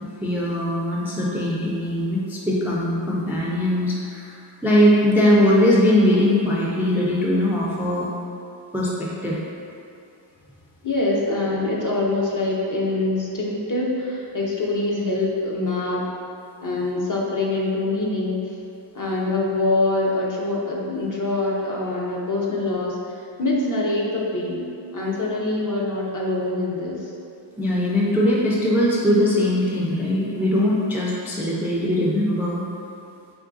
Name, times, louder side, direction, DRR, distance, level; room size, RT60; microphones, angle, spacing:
voice 1, 0.2-4.4 4.6-8.1 8.7-9.4 27.6-32.6, left 1 dB, 5° right, -5 dB, 0.3 m, -20 dB
voice 2, 10.8-16.1 16.6-18.4 18.9-23.0 23.4-27.1, left 2 dB, 40° left, -3 dB, 0.6 m, -24 dB
3.6 x 3.1 x 2.5 m, 2.6 s
wide cardioid pair, 75°, 49 cm